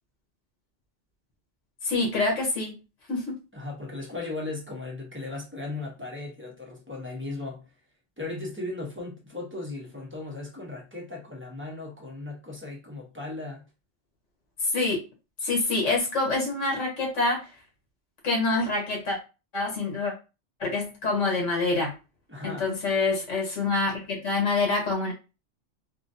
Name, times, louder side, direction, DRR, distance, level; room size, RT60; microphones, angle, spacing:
voice 1, 1.8-2.8 3.1-3.4 14.6-15.0 15.4-17.5 18.2-19.2 19.5-20.1 20.6-21.9 22.4-25.1, left 3 dB, 80° left, 1.6 m, -26 dB
voice 2, 3.5-7.7 8.2-13.6 22.3-22.7, left 2 dB, 15° right, 0.6 m, -37 dB
3.8 x 2.2 x 2.6 m
omnidirectional pair, 1.3 m